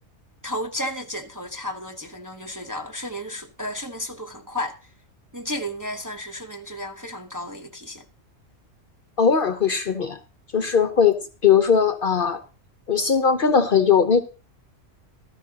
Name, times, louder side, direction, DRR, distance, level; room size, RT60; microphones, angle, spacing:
voice 1, 0.4-4.8 5.3-8.0, left 1 dB, 15° right, 0.8 m, -33 dB
voice 2, 9.2-10.2 10.5-11.2 11.4-12.4 12.9-14.2, left 6 dB, 50° left, 0.8 m, -19 dB
15.0 x 13.5 x 2.8 m
omnidirectional pair, 1.3 m